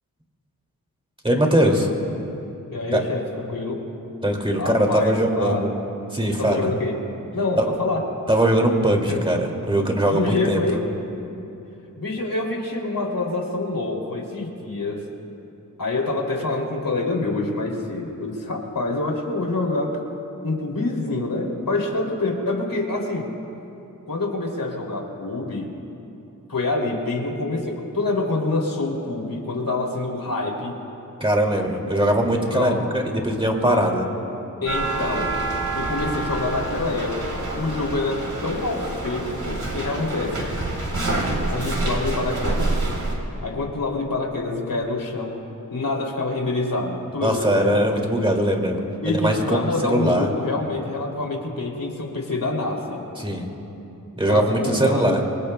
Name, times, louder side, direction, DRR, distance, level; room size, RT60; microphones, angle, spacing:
voice 1, 1.2-1.9 2.9-3.0 4.2-5.7 6.1-6.7 7.6-7.7 8.3-10.6 31.2-34.0 47.2-50.3 53.2-53.4 54.2-55.2, right 1 dB, 15° right, 1 dB, 2.3 m, -21 dB
voice 2, 2.7-3.8 4.6-5.6 6.4-7.0 7.3-8.0 9.1-9.2 10.1-10.8 12.0-15.0 15.8-20.0 20.4-23.3 24.1-25.7 26.5-30.8 32.5-32.9 33.6-33.9 34.6-35.3 35.7-40.5 41.5-42.7 43.4-45.4 45.7-47.9 49.0-53.0 54.3-55.2, left 2 dB, 75° left, 0 dB, 2.8 m, -26 dB
sound 1, 34.7-43.1, right 2 dB, 55° right, 3.6 m, -27 dB
27.5 x 23.5 x 2.2 m, 2.9 s
wide cardioid pair, 80°, 34 cm